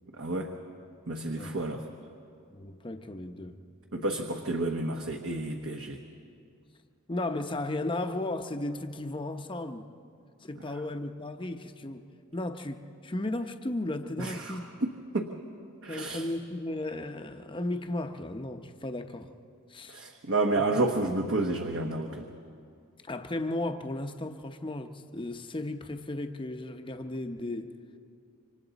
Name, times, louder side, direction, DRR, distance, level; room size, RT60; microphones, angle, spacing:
voice 1, 0.2-0.5 1.1-1.8 3.9-6.0 14.2-14.9 15.1-15.3 15.8-16.2 19.9-22.2, right 2 dB, 60° right, 1.0 m, -30 dB
voice 2, 2.5-3.6 7.1-9.8 10.4-12.0 12.3-14.6 15.9-19.3 19.7-20.0 20.7-20.9 23.0-27.7, left 2 dB, 20° left, 0.8 m, -35 dB
27.5 x 25.0 x 4.1 m
head